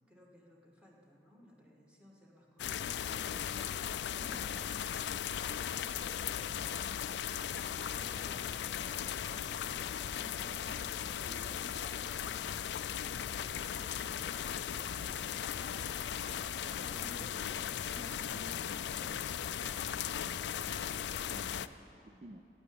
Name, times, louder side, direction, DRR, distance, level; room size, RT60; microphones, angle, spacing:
voice 1, 0.1-5.4 7.1-16.2 16.6-19.4, equal, 5° right, -2 dB, 1.7 m, -56 dB
sound 1, 2.6-21.7, left 9 dB, 75° left, 0.3 m, -37 dB
voice 2, 16.8-17.4 20.2-22.5, right 2 dB, 35° right, 5 dB, 0.4 m, -54 dB
12.0 x 8.8 x 8.6 m, 2.8 s
head